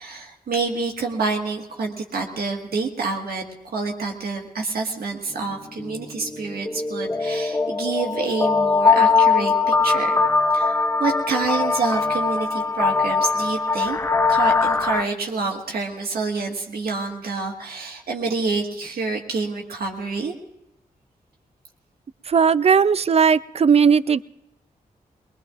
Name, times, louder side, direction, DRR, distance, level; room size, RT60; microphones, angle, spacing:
voice 1, 0.0-9.5 9.8-10.2 10.5-14.0 14.3-20.4, right 4 dB, 80° right, 1 dB, 1.7 m, -27 dB
sound 1, 5.4-5.5 5.8-15.0, left 4 dB, 15° left, 0.5 m, -21 dB
voice 2, 22.3-24.2, right 6 dB, 40° right, 16 dB, 0.4 m, -17 dB
21.5 x 20.5 x 2.5 m, 0.91 s
cardioid pair, 50°, 16 cm